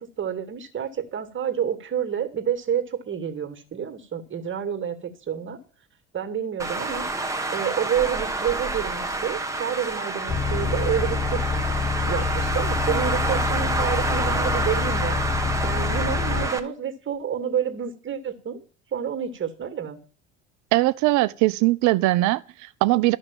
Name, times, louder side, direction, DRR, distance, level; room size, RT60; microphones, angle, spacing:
voice 1, 0.0-5.6 6.1-7.1 7.5-11.5 12.1-15.2 15.6-18.6 18.9-20.0, right 8 dB, 35° right, 2.4 m, -29 dB
Traffic noise roadway noise, 6.6-16.6, right 2 dB, 10° right, 1.6 m, -28 dB
Bus, 10.3-16.5, left 4 dB, 20° left, 0.9 m, -27 dB
voice 2, 20.7-23.2, right 18 dB, 55° right, 0.8 m, -21 dB
13.0 x 5.9 x 9.0 m
hypercardioid pair, 65°, 35 cm